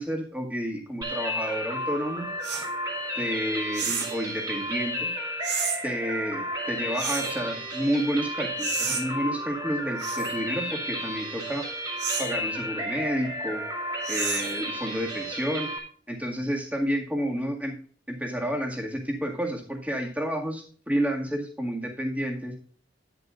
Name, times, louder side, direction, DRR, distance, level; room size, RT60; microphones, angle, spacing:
voice 1, 0.0-2.3 3.2-5.1 5.8-11.7 12.2-13.6 14.1-15.7 16.1-17.8 18.1-22.5, equal, 10° right, 0 dB, 2.0 m, -30 dB
sound 1, 1.0-15.8, equal, 25° right, 2.4 m, -33 dB
sound 2, 2.4-2.7 3.7-4.2 5.4-5.8 7.0-7.4 8.6-9.0 10.0-10.3 12.0-12.3 14.0-14.6, right 6 dB, 75° right, 2.1 m, -30 dB
11.0 x 10.5 x 2.5 m, 0.42 s
head